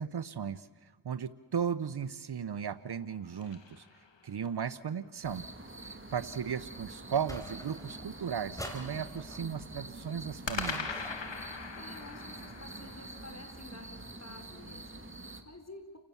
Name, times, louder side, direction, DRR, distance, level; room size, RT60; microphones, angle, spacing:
voice 1, 0.0-3.9 4.2-5.5 5.8-11.0, right 7 dB, 60° right, 16 dB, 0.8 m, -36 dB
sound 1, 2.7-4.6 10.4-14.7, left 5 dB, 70° left, 2.3 m, -42 dB
sound 2, 5.2-15.4, right 2 dB, 25° right, 2.6 m, -46 dB
voice 2, 6.1-6.5 11.7-16.0, left 2 dB, 35° left, 6 dB, 4.6 m, -51 dB
sound 3, 7.3-8.1 8.6-9.4 10.6-11.4, equal, 5° left, 4.9 m, -44 dB
29.5 x 17.5 x 7.1 m, 1.4 s
cardioid pair, 45°, 45 cm